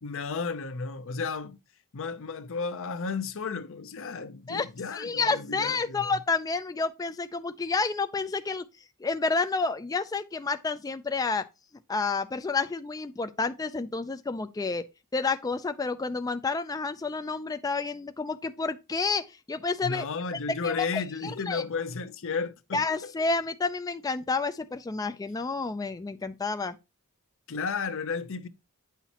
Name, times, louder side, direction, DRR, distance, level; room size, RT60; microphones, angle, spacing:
voice 1, 0.0-1.6 1.9-6.2 19.8-23.1 27.5-28.5, left 4 dB, 60° left, 0.6 m, -33 dB
voice 2, 4.9-8.6 9.0-11.4 11.9-14.8 15.1-20.0 20.6-21.6 22.7-26.8, left 4 dB, 15° left, 0.3 m, -30 dB
9.2 x 5.6 x 2.9 m
head